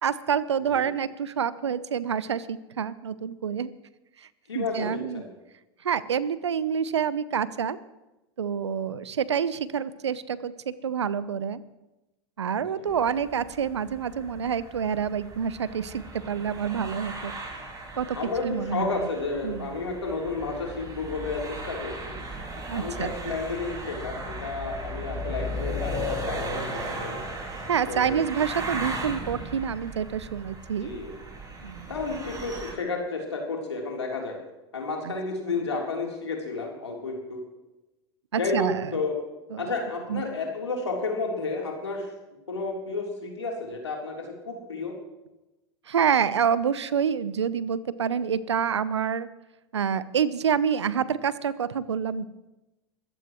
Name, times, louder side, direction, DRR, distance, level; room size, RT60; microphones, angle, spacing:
voice 1, 0.0-3.7 4.5-5.2 5.8-7.8 8.4-11.6 12.4-17.3 18.0-18.2 18.4-19.0 19.4-19.7 22.7-23.4 27.7-30.9 31.6-31.9 35.0-35.1 38.3-38.9 39.5-39.7 40.1-40.2 45.9-49.3 49.7-52.3, right 7 dB, 85° right, 17 dB, 0.7 m, -27 dB
voice 2, 4.5-5.3 12.7-13.0 18.1-22.2 22.7-27.2 27.9-28.1 30.8-31.1 31.9-34.3 34.7-37.4 38.4-39.2 39.6-42.1 42.5-44.9, left 3 dB, 90° left, 0 dB, 3.5 m, -31 dB
sound 1, 12.9-32.7, right 1 dB, 25° right, 5.3 m, -36 dB
24.0 x 14.0 x 3.1 m, 1.0 s
hypercardioid pair, 85°, 14 cm